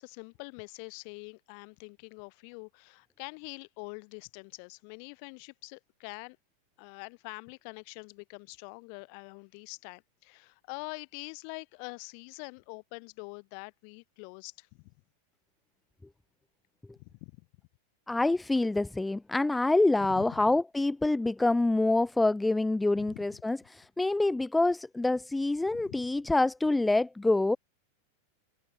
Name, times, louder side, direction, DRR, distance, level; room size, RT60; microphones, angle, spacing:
voice 1, 0.0-6.4 6.8-14.9 17.0-17.5 20.1-20.4 23.0-23.4 25.7-26.0, left 40 dB or more, 45° left, 4.1 m, -45 dB
voice 2, 18.1-27.6, left 2 dB, 5° left, 0.6 m, -26 dB
figure-of-eight pair, 90°, 0 cm